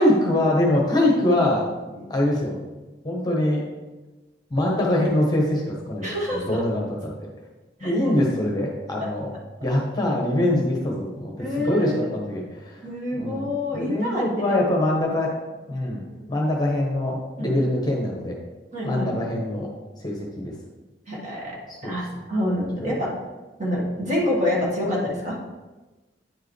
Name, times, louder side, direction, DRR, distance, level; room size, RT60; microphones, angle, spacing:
voice 1, 0.0-1.7 2.1-2.6 3.0-3.6 4.5-7.3 7.8-9.3 9.6-12.8 13.2-15.3 15.7-16.0 16.3-18.4 18.8-19.7 20.0-20.5 21.7-22.0 22.8-22.9, left 1 dB, 20° left, -1 dB, 1.0 m, -23 dB
voice 2, 6.0-6.6 7.8-8.2 11.4-12.1 12.8-14.6 17.4-17.5 18.7-19.1 21.1-21.6 21.8-23.1 23.6-25.4, left 1 dB, 40° right, -4 dB, 1.7 m, -27 dB
9.3 x 4.7 x 3.2 m, 1.2 s
head